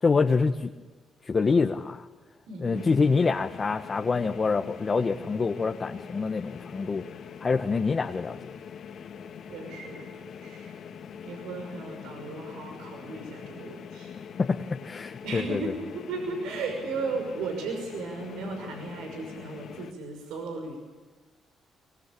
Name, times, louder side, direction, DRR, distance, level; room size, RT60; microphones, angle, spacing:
voice 1, 0.0-0.7 1.2-2.1 2.6-7.0 7.4-8.6 14.4-15.7, left 4 dB, 35° left, 4 dB, 1.5 m, -26 dB
voice 2, 2.5-3.1 5.1-5.3 9.5-10.8 11.2-14.1 15.2-20.8, right 3 dB, 90° right, 3 dB, 5.8 m, -36 dB
sound 1, 2.7-19.9, left 7 dB, 65° left, 2.5 m, -43 dB
24.0 x 22.5 x 8.6 m, 1.3 s
cardioid pair, 90°, 0 cm